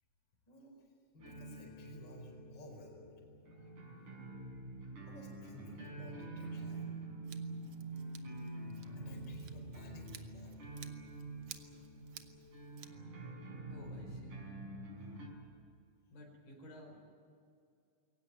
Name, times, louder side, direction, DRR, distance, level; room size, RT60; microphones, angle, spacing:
voice 1, 0.5-3.1 5.1-6.9 8.9-10.5, equal, 30° left, 0 dB, 5.2 m, -55 dB
sound 1, 1.2-15.3, right 2 dB, 55° right, 7.1 m, -46 dB
Scissors, 7.2-12.9, right 9 dB, 75° right, 1.3 m, -56 dB
voice 2, 13.7-14.4 16.1-17.0, left 1 dB, 70° left, 0 dB, 6.6 m, -53 dB
22.5 x 18.0 x 9.4 m, 2.4 s
omnidirectional pair, 4.2 m